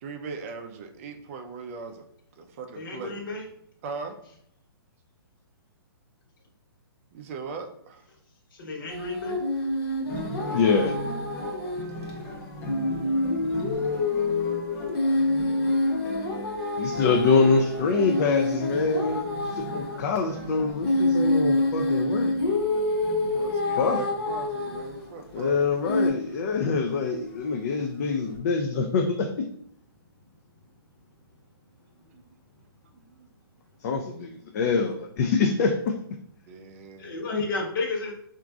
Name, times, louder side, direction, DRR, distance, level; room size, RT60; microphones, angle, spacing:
voice 1, 0.0-2.1 2.4-3.2 3.8-4.2 7.1-8.1 10.4-11.0 23.3-25.8 32.1-32.3 32.9-33.3 36.5-37.1, right 4 dB, 35° right, 5 dB, 0.4 m, -40 dB
voice 2, 2.7-3.5 8.5-9.4 37.0-38.1, left 3 dB, 60° left, 0 dB, 1.0 m, -32 dB
sound 1, 8.9-11.8 12.1-12.2 12.7-20.0 20.8-25.0 25.9-26.1, left 2 dB, 80° left, 1.1 m, -27 dB
sound 2, 10.0-28.4, equal, 25° left, 0.8 m, -40 dB
voice 3, 10.5-10.9 16.8-22.3 23.8-24.0 25.3-29.3 33.8-35.9 37.3-37.4, left 4 dB, 40° left, 4 dB, 0.3 m, -25 dB
3.6 x 2.5 x 2.3 m, 0.68 s
hypercardioid pair, 140°, 13 cm